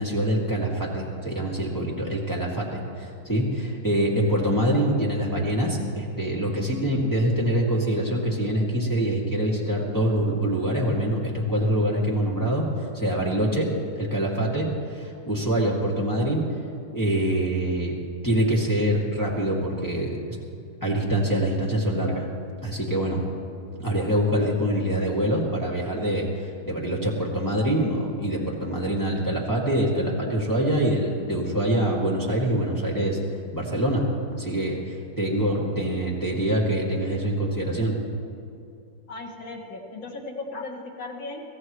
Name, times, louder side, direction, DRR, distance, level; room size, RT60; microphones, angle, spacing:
voice 1, 0.0-12.7 12.9-13.7 14.0-16.4 16.9-17.9 18.2-20.2 20.8-22.3 22.6-23.2 23.8-33.2 33.5-34.0 34.4-37.9, right 1 dB, 10° left, -4 dB, 2.1 m, -25 dB
voice 2, 39.1-41.4, left 3 dB, 60° left, 0 dB, 2.6 m, -36 dB
23.5 x 15.5 x 3.2 m, 2.6 s
omnidirectional pair, 2.4 m